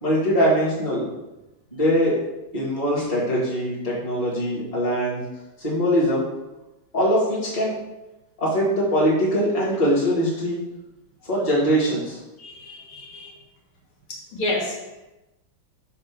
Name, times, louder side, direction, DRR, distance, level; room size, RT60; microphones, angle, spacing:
voice 1, 0.0-1.1 1.7-2.2 2.5-5.2 5.6-6.3 6.9-7.7 8.4-10.6 11.2-12.2, equal, 15° left, -7 dB, 1.9 m, -22 dB
voice 2, 12.4-13.3 14.3-14.7, left 1 dB, 75° left, -3 dB, 2.4 m, -29 dB
6.6 x 3.2 x 5.9 m, 1.0 s
omnidirectional pair, 2.4 m